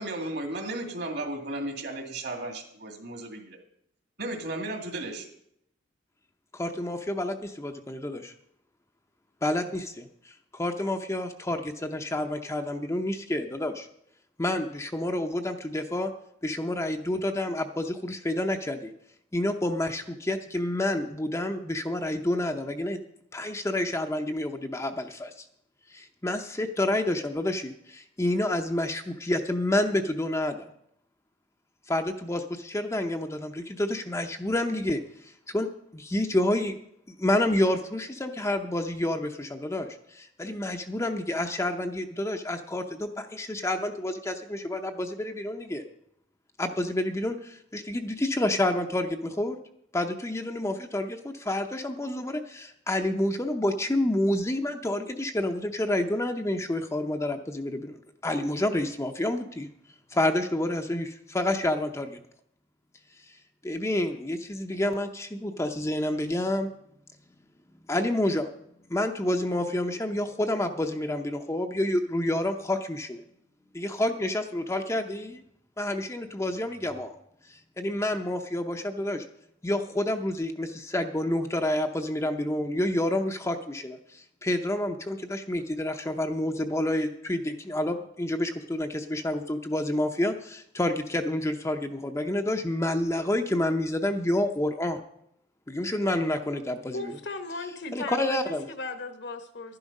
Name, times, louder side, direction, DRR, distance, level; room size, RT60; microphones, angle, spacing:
voice 1, 0.0-3.6 4.2-5.3, right 2 dB, 60° right, 4 dB, 2.2 m, -34 dB
voice 2, 6.5-8.3 9.4-13.9 14.4-16.1 16.4-18.9 19.3-23.0 23.3-25.4 25.9-30.6 31.9-36.8 37.1-45.8 46.6-49.6 49.9-58.0 58.2-59.7 60.1-62.2 63.6-66.7 67.9-68.5 68.9-73.2 73.7-75.4 75.8-77.2 77.5-79.2 79.6-95.0 95.7-97.1 97.9-98.7, left 1 dB, 15° left, 5 dB, 0.7 m, -29 dB
voice 3, 96.9-99.8, left 3 dB, 60° left, 9 dB, 1.2 m, -37 dB
12.0 x 11.0 x 5.3 m, 0.73 s
head